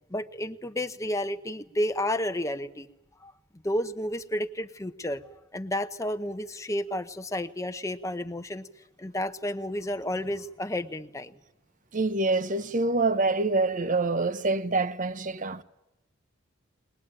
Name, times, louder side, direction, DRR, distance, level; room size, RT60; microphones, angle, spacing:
voice 1, 0.1-2.9 3.2-3.3 3.6-5.2 5.5-8.7 9.0-11.3, left 1 dB, 15° left, 0.8 m, -31 dB
voice 2, 11.9-15.6, right 3 dB, 40° right, 0.8 m, -26 dB
22.0 x 20.5 x 8.8 m
head